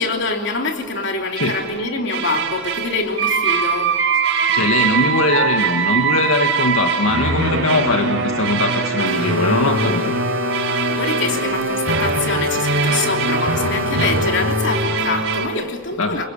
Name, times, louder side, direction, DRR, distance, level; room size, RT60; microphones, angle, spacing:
voice 1, 0.0-4.0 10.9-16.2, left 3 dB, 55° left, 3 dB, 3.2 m, -25 dB
sound 1, 1.4-1.7 2.1-15.5, right 4 dB, 60° right, 4.6 m, -21 dB
voice 2, 4.5-10.1 16.0-16.2, left 2 dB, 80° left, 4 dB, 1.7 m, -20 dB
sound 2, 9.1-14.8, left 5 dB, 85° right, 3.2 m, -28 dB
28.5 x 24.0 x 8.7 m, 1.4 s
head